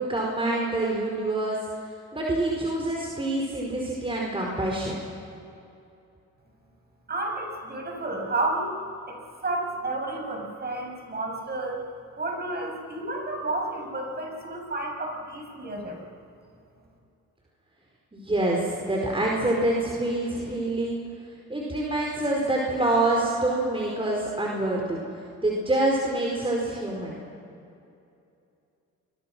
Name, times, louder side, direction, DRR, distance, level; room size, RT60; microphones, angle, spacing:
voice 1, 0.0-1.6 2.1-5.0 18.1-21.0 21.5-25.0 25.4-27.2, right 2 dB, 20° right, -2 dB, 4.8 m, -26 dB
voice 2, 7.1-11.8 12.2-16.0, right 2 dB, 35° right, 1 dB, 7.3 m, -31 dB
29.0 x 23.0 x 6.2 m, 2.7 s
cardioid pair, 90°, 30 cm